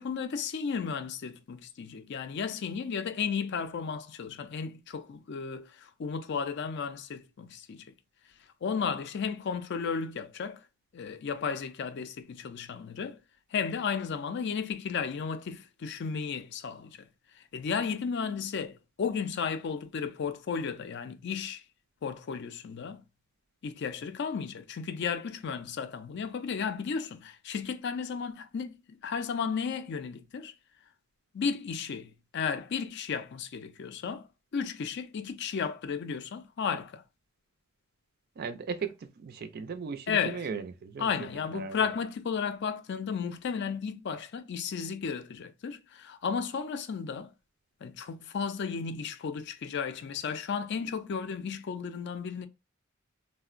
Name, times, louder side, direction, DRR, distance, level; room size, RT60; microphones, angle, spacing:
voice 1, 0.0-7.8 8.6-10.6 10.9-13.2 13.5-17.0 17.3-21.6 22.0-23.0 23.6-30.5 31.3-34.3 34.5-37.0 40.1-40.4 41.0-47.3 47.8-52.5, left 6 dB, 50° left, 0.4 m, -34 dB
voice 2, 38.4-41.1 41.5-41.9, right 5 dB, 45° right, 0.3 m, -37 dB
3.6 x 2.0 x 2.4 m
head